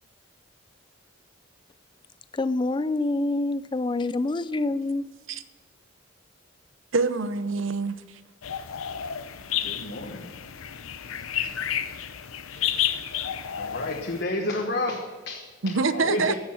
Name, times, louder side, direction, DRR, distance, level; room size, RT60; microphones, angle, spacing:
voice 1, 2.3-5.1, left 2 dB, 25° left, 16 dB, 0.3 m, -26 dB
voice 2, 6.9-8.2 11.3-11.5 15.6-16.3, right 4 dB, 70° right, 12 dB, 0.8 m, -26 dB
sound 1, 8.4-14.2, left 10 dB, 85° left, 0.7 m, -31 dB
voice 3, 9.5-10.3 11.1-11.5 13.6-16.3, left 1 dB, 55° left, 0 dB, 1.3 m, -31 dB
15.5 x 7.2 x 6.2 m, 1.4 s
head